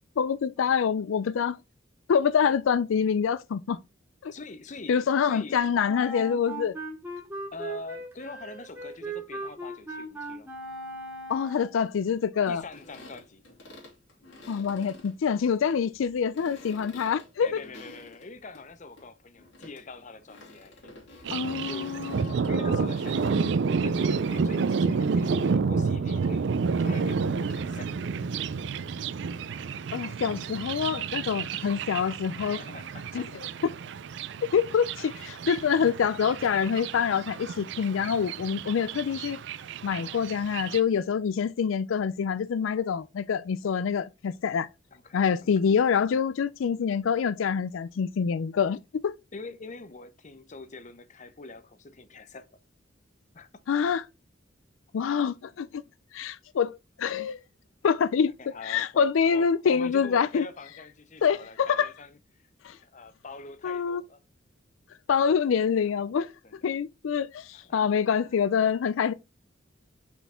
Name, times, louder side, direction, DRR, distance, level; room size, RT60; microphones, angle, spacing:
voice 1, 0.2-1.6 2.1-3.8 4.2-4.3 4.9-6.8 11.3-12.6 14.5-17.6 21.3-22.9 29.9-32.6 33.1-33.3 34.4-39.4 39.8-44.7 45.1-49.1 53.7-54.0 54.9-55.8 56.1-57.4 57.8-58.3 58.6-60.5 61.2-61.9 62.6-62.8 63.6-64.0 65.1-66.3 66.6-69.1, left 7 dB, 85° left, 0.4 m, -26 dB
voice 2, 4.3-5.7 7.5-10.5 12.5-13.5 17.4-22.0 22.5-26.5 26.8-28.1 32.4-33.3 40.0-40.3 44.9-45.2 49.3-52.5 53.3-53.5 58.4-62.2 62.7-64.2 66.4-66.6 67.5-68.4, left 3 dB, 40° left, 0.7 m, -44 dB
Wind instrument woodwind instrument, 5.9-11.8, right 2 dB, 10° right, 2.2 m, -38 dB
sound 1, 12.6-18.7 19.0-23.3, left 2 dB, 70° left, 2.9 m, -50 dB
Thunder, 21.2-40.8, right 5 dB, 60° right, 0.4 m, -30 dB
5.7 x 4.4 x 4.2 m
head